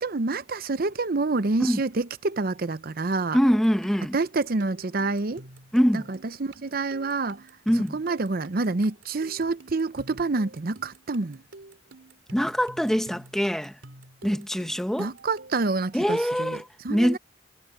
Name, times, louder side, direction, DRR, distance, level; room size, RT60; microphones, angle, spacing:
voice 1, 0.0-3.4 4.1-5.4 5.9-7.4 7.9-11.4 15.0-16.6 16.8-17.2, right 3 dB, 50° right, 0.7 m, -27 dB
voice 2, 3.3-4.1 5.7-6.1 7.7-8.0 12.3-13.8 14.2-15.1 15.9-17.2, equal, ahead, 1.1 m, -24 dB
sound 1, 3.4-15.8, right 2 dB, 85° right, 3.3 m, -49 dB
head